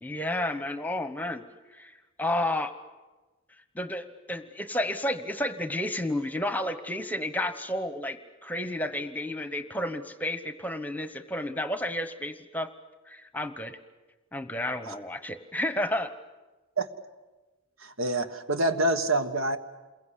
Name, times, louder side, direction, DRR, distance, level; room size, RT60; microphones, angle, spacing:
voice 1, 0.0-1.4 1.7-1.9 2.2-2.8 3.7-12.7 13.1-13.8 14.3-16.1, left 1 dB, 10° left, 10 dB, 1.0 m, -31 dB
voice 2, 17.8-19.6, right 2 dB, 75° right, 9 dB, 1.6 m, -26 dB
28.5 x 22.5 x 8.4 m, 1.2 s
head